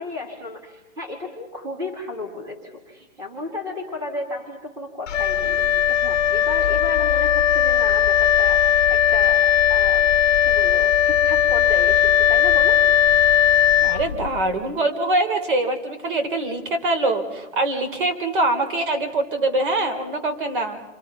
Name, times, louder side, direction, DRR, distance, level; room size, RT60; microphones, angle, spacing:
voice 1, 0.0-10.2 10.5-12.8, left 2 dB, 10° right, 2 dB, 2.4 m, -34 dB
Wind instrument woodwind instrument, 5.1-14.5, left 10 dB, 85° left, 1.2 m, -18 dB
voice 2, 13.8-20.8, right 2 dB, 45° right, 7 dB, 3.9 m, -23 dB
28.5 x 25.0 x 5.8 m, 1.1 s
hypercardioid pair, 165°, 37 cm